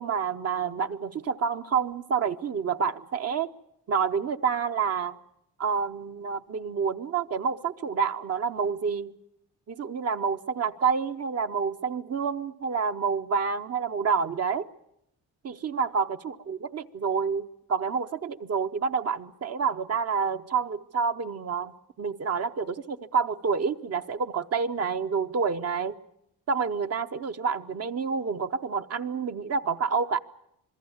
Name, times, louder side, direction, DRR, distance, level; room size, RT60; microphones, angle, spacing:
voice 1, 0.0-3.5 3.9-5.2 5.6-9.1 9.7-14.7 15.4-26.0 26.5-30.2, right 6 dB, 40° right, 8 dB, 0.8 m, -28 dB
26.5 x 21.5 x 7.2 m, 0.78 s
cardioid pair, 140°, 37 cm